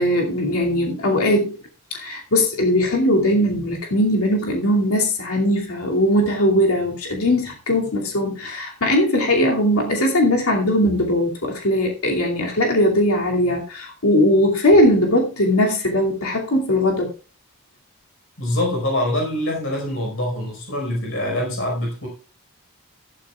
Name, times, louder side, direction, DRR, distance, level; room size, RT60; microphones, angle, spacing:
voice 1, 0.0-1.6 1.9-17.1, left 1 dB, 85° left, 0 dB, 2.6 m, -19 dB
voice 2, 18.4-22.1, left 1 dB, 60° left, 1 dB, 4.9 m, -24 dB
14.0 x 12.5 x 2.4 m, 0.34 s
head